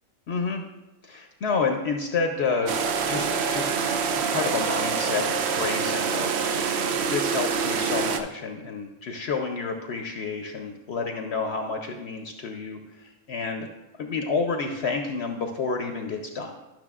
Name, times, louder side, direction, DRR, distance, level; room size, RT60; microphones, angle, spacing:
voice 1, 0.3-0.6 1.0-2.8 3.1-3.7 4.1-6.3 7.0-13.7 14.0-16.5, left 4 dB, 60° left, 4 dB, 0.8 m, -29 dB
sound 1, 2.7-8.2, right 6 dB, 65° right, 0.8 m, -26 dB
12.0 x 6.2 x 2.4 m, 1.0 s
omnidirectional pair, 1.4 m